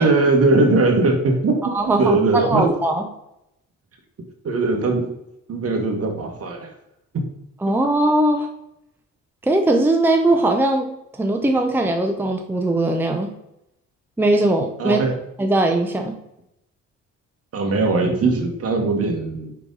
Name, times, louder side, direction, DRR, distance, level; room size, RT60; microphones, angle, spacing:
voice 1, 0.0-1.6 2.0-2.7 4.4-5.1 5.5-6.7 7.7-7.8 14.8-15.1 17.5-19.5, right 3 dB, 50° right, 3 dB, 1.4 m, -20 dB
voice 2, 1.7-3.0 7.6-8.5 9.4-10.9 11.1-13.3 14.2-15.0 15.4-16.1, right 2 dB, 5° right, 4 dB, 0.6 m, -19 dB
5.2 x 4.7 x 3.9 m, 0.83 s
cardioid pair, 90°, 30 cm